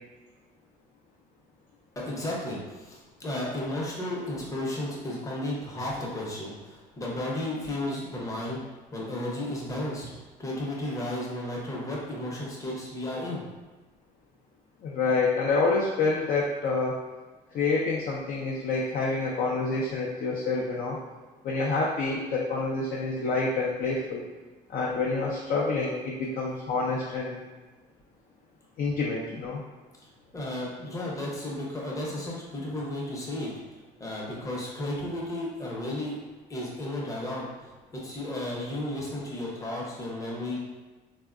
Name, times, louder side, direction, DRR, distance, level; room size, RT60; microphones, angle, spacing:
voice 1, 2.0-8.6 8.9-13.4 30.3-33.6 34.0-36.2 36.5-40.6, left 1 dB, 20° left, -4 dB, 0.7 m, -33 dB
voice 2, 14.8-16.9 17.5-21.0 21.4-24.2 24.7-27.4 28.8-29.6, left 3 dB, 55° left, -4 dB, 0.5 m, -27 dB
3.4 x 2.1 x 2.4 m, 1.2 s
cardioid pair, 110°, 17 cm